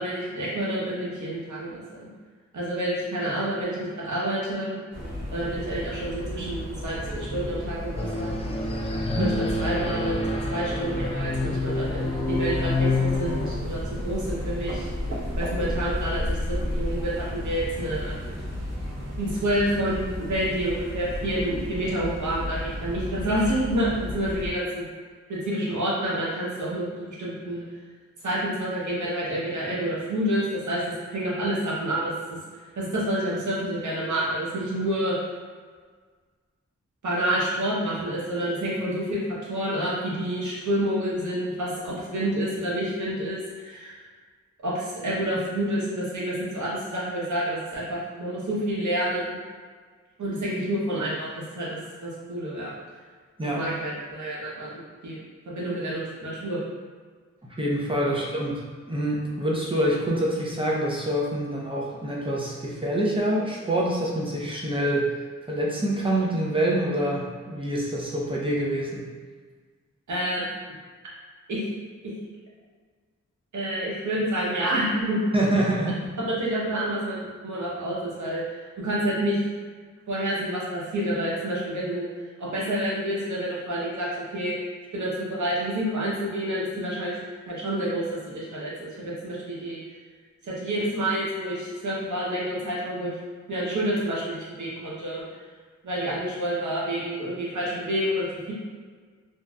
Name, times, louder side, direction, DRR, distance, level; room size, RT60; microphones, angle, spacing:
voice 1, 0.0-2.1 2.5-4.8 5.3-8.4 9.2-9.3 9.6-14.9 15.4-18.2 19.2-24.9 25.3-27.6 28.2-32.1 32.8-35.2 37.0-39.2 39.5-44.0 44.6-49.4 50.2-52.7 53.5-55.2 55.5-56.6 58.0-58.2 70.1-70.7 71.5-71.6 72.0-72.1 73.5-75.2 76.3-78.4 78.8-79.4 80.1-82.1 82.4-84.5 84.9-87.1 87.5-89.8 90.4-93.1 93.5-95.2 95.8-98.5, right 1 dB, 85° right, -6 dB, 0.8 m, -28 dB
sound 1, 4.9-24.5, left 1 dB, 60° right, 1.0 m, -33 dB
sound 2, 8.0-13.5, left 2 dB, 20° left, 0.4 m, -28 dB
voice 2, 57.4-65.1 65.5-69.1 75.3-76.0, right 1 dB, 20° right, -4 dB, 0.7 m, -26 dB
2.9 x 2.6 x 2.3 m, 1.5 s
cardioid pair, 55°, 29 cm